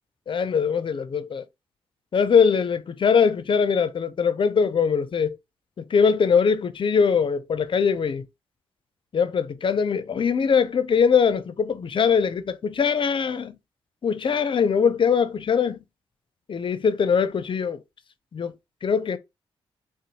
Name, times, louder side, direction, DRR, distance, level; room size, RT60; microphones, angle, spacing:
voice 1, 0.3-1.4 2.1-5.4 5.8-8.3 9.1-13.6 14.0-15.8 16.5-17.8 18.3-18.5 18.8-19.2, left 6 dB, 50° left, 0.5 m, -22 dB
3.8 x 2.1 x 2.8 m
supercardioid pair, 45°, 11 cm